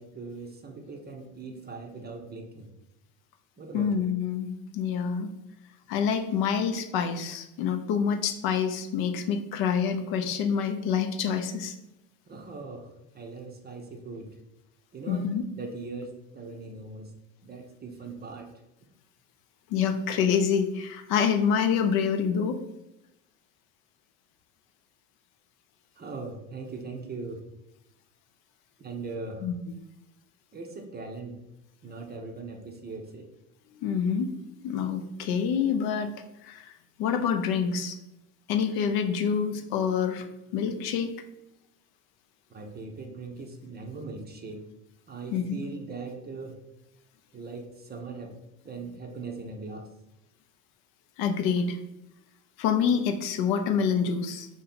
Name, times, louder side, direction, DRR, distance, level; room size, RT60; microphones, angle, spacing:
voice 1, 0.0-2.7 3.6-4.1 12.3-14.3 14.9-17.1 17.4-18.5 26.0-27.4 28.8-29.5 30.5-31.3 31.8-33.3 42.5-44.6 45.1-46.6 47.3-48.3 48.6-49.9, right 3 dB, 25° right, 3 dB, 0.5 m, -40 dB
voice 2, 3.7-5.3 5.9-11.7 15.1-15.4 19.7-22.6 29.4-29.5 33.8-34.3 34.6-36.1 36.4-36.7 37.0-38.0 38.5-40.2 40.5-41.1 45.3-45.6 51.2-51.8 52.6-54.5, left 7 dB, 60° left, 7 dB, 0.6 m, -27 dB
2.8 x 2.7 x 4.2 m, 0.91 s
supercardioid pair, 85°, 42 cm